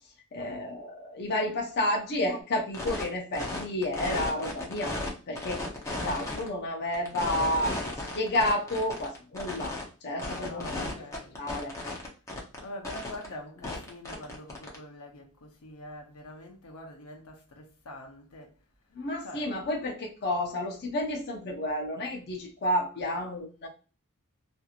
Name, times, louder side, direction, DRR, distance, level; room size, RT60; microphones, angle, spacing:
voice 1, 0.3-5.0 5.3-5.6 5.9-7.8 8.1-9.8 10.0-10.9 11.4-11.7 18.9-23.7, left 1 dB, 50° left, 0.6 m, -30 dB
sound 1, 2.7-3.1 3.3-5.1 5.4-6.5 6.9-9.8 10.2-12.6 12.8-13.3 13.6-14.8, left 2 dB, 15° left, 0.7 m, -35 dB
voice 2, 10.3-11.5 12.6-18.5 19.2-19.5, left 1 dB, 85° left, 0.8 m, -44 dB
2.9 x 2.6 x 2.4 m
head